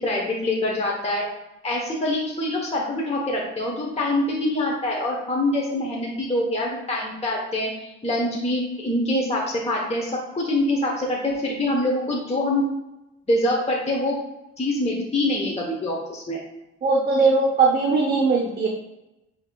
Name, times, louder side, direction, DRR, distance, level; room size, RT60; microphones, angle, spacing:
voice 1, 0.0-1.3 1.6-12.6 13.3-14.2 14.6-16.4, left 1 dB, 20° left, -2 dB, 0.9 m, -25 dB
voice 2, 16.8-18.7, right 4 dB, 30° right, -1 dB, 0.7 m, -19 dB
7.8 x 2.9 x 2.2 m, 0.93 s
cardioid pair, 90°, 30 cm